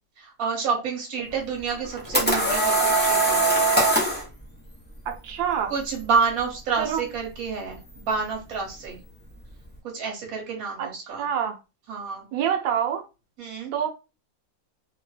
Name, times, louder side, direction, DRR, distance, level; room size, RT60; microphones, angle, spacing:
voice 1, 0.2-3.6 5.7-9.0 9.9-11.2 11.9-12.2 13.4-13.7, right 5 dB, 55° right, 1.5 m, -28 dB
sound 1, 1.7-4.2, right 2 dB, 15° left, 0.3 m, -21 dB
voice 2, 5.1-5.7 6.8-7.0 10.8-10.9 11.2-11.6 12.3-13.0 13.7-13.9, right 8 dB, 80° right, 1.3 m, -26 dB
3.4 x 2.1 x 3.2 m
omnidirectional pair, 2.0 m